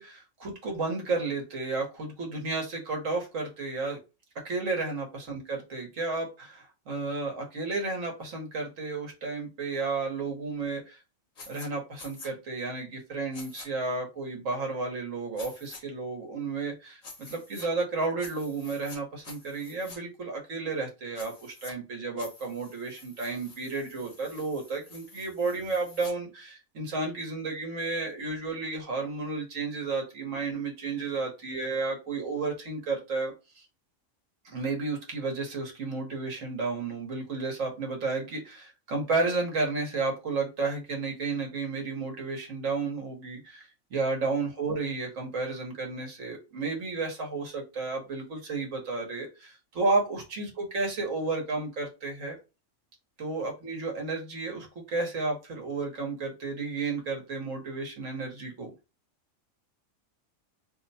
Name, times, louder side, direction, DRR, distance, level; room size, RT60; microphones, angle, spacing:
voice 1, 0.0-4.0 4.4-11.0 11.5-33.6 34.4-52.4 53.2-58.7, right 3 dB, 70° right, 1 dB, 1.5 m, -32 dB
sound 1, 11.4-11.7 12.0-12.3 13.3-13.7 15.4-15.8 17.0-17.7 18.2-19.0 19.2-20.0 21.1-21.7 22.2-26.1, left 3 dB, 35° left, 0.7 m, -48 dB
3.1 x 2.1 x 4.0 m, 0.28 s
omnidirectional pair, 1.4 m